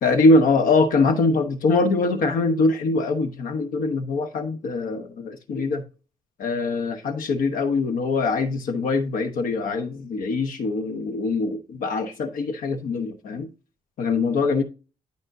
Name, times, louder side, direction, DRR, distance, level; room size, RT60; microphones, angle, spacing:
voice 1, 0.0-5.8 6.4-13.5 14.0-14.6, left 3 dB, 80° left, 1.1 m, -23 dB
11.5 x 5.2 x 2.6 m
cardioid pair, 125°, 14 cm